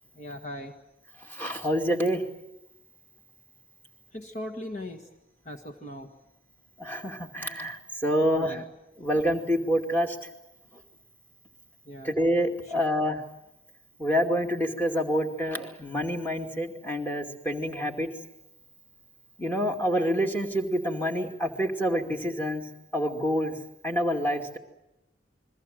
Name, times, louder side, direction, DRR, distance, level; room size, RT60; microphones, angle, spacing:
voice 1, 0.1-0.7 4.1-5.1 5.4-6.1 8.2-8.6 11.8-12.1 12.7-12.9, left 1 dB, 40° left, 2 dB, 1.7 m, -39 dB
voice 2, 1.2-2.2 6.8-8.6 9.0-10.3 12.0-13.2 14.0-18.1 19.4-22.6 22.9-23.5 23.8-24.6, equal, 10° left, 2 dB, 2.4 m, -27 dB
29.0 x 22.0 x 7.8 m, 0.90 s
head